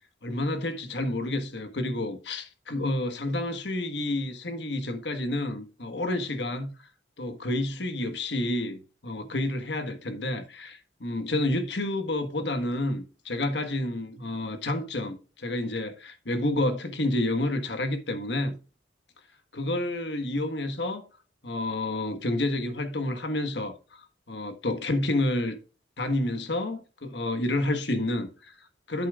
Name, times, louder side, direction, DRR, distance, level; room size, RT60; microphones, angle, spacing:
voice 1, 0.2-6.7 7.2-18.6 19.5-21.1 21.4-25.6 26.0-29.1, left 1 dB, 70° left, 1.4 m, -29 dB
10.5 x 8.5 x 2.4 m
head